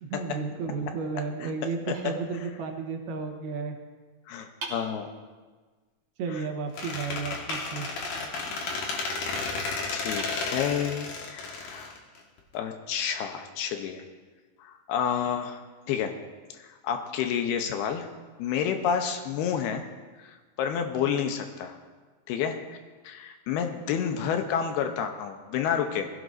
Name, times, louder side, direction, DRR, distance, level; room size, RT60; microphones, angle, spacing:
voice 1, 0.0-3.8 6.2-7.9, right 5 dB, 70° right, 3 dB, 3.0 m, -33 dB
sound 1, 1.9-2.9 4.6-5.6 7.5-8.4 9.6-9.7 10.2-11.1, right 2 dB, 40° right, 3.0 m, -44 dB
voice 2, 4.3-5.1 6.3-6.4 9.0-9.2 9.9-11.9 12.5-14.0 14.6-15.6 15.9-16.1 16.6-18.1 18.4-19.8 20.2-21.8 22.3-22.8 23.0-26.1, left 8 dB, 75° left, 6 dB, 2.7 m, -30 dB
Squeak, 6.8-12.5, left 3 dB, 60° left, 2.8 m, -33 dB
20.5 x 16.0 x 2.7 m, 1.4 s
omnidirectional pair, 4.9 m